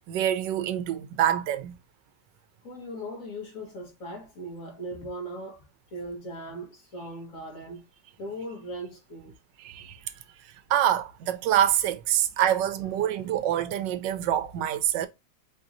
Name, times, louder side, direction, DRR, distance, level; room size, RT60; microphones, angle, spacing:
voice 1, 0.1-1.8 9.6-10.0 10.7-15.1, right 11 dB, 85° right, 1.2 m, -26 dB
voice 2, 2.6-5.6 5.9-7.8 8.2-9.3 13.1-13.2, right 1 dB, 50° left, 1.8 m, -39 dB
4.6 x 2.7 x 2.5 m
omnidirectional pair, 1.9 m